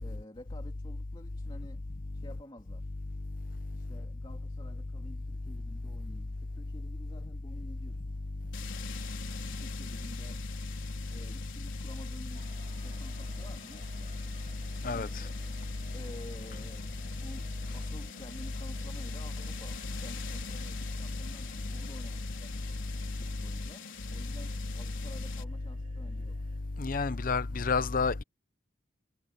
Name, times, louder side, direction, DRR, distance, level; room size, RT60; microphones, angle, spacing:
voice 1, 0.0-1.8 2.1-2.9 3.7-8.1 9.3-10.5 11.1-14.3 14.8-15.4 15.9-22.6 23.2-26.4, left 1 dB, 25° left, 2.4 m, -51 dB
sound 1, 8.5-25.4, left 5 dB, 70° left, 4.7 m, -46 dB
sound 2, 12.3-26.6, right 2 dB, 35° right, 2.2 m, -59 dB
voice 2, 14.8-15.2 26.8-28.2, left 4 dB, 45° left, 0.7 m, -29 dB
head